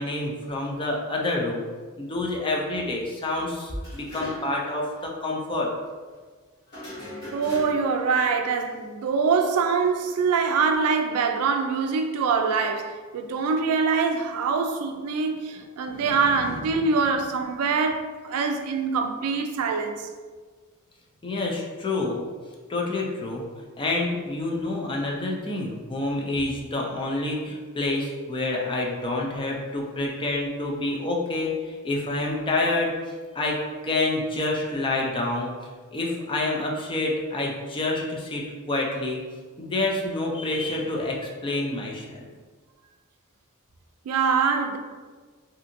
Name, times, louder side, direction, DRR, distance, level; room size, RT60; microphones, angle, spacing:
voice 1, 0.0-1.7 2.0-5.7 15.9-16.9 21.2-22.2 22.7-35.5 35.9-39.2 39.6-42.3, left 2 dB, 25° left, 0.4 m, -28 dB
sound 1, 3.8-4.7 4.9-5.0 6.7-8.0, equal, 50° left, 1.1 m, -39 dB
voice 2, 7.3-20.1 44.1-44.8, right 5 dB, 85° right, 0.3 m, -24 dB
2.7 x 2.5 x 2.6 m
head